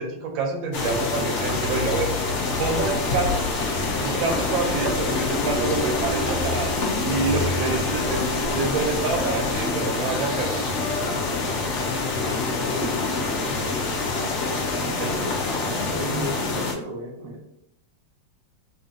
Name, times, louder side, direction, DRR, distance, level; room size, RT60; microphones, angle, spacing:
voice 1, 0.0-2.2 2.6-3.5 4.0-6.7 7.0-10.6 14.7-15.2, right 4 dB, 80° right, 2 dB, 1.5 m, -27 dB
sound 1, 0.7-16.7, left 3 dB, 60° left, 0.7 m, -26 dB
Stream, 2.6-9.7, equal, 40° left, 1.6 m, -35 dB
voice 2, 12.7-14.3 14.7-17.5, right 1 dB, 50° right, -1 dB, 0.7 m, -36 dB
3.3 x 2.8 x 3.7 m, 0.78 s
omnidirectional pair, 2.1 m